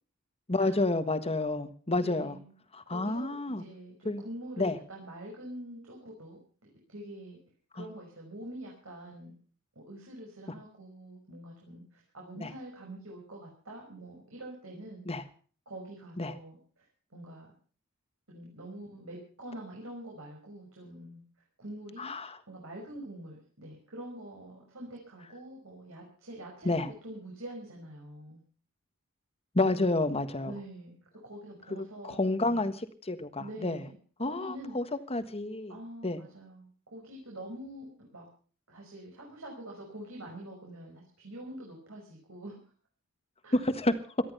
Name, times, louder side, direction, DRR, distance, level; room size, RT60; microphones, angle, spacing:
voice 1, 0.5-2.4 2.7-3.6 4.0-4.2 4.6-4.8 7.7-7.9 12.4-12.5 15.0-15.2 16.2-16.3 22.0-22.4 26.6-26.9 29.5-30.5 31.7-33.9 34.2-35.8 36.0-36.2 43.5-43.9, left 2 dB, 30° left, 10 dB, 1.5 m, -30 dB
voice 2, 2.0-2.5 2.9-6.4 6.9-7.4 7.7-9.4 9.8-15.0 15.7-17.5 18.3-21.2 21.6-22.1 22.5-28.4 30.4-30.9 31.2-32.7 33.4-34.8 35.7-38.3 38.7-42.6 43.4-43.6, right 1 dB, 70° right, -1 dB, 5.6 m, -45 dB
18.5 x 13.5 x 5.6 m, 0.42 s
head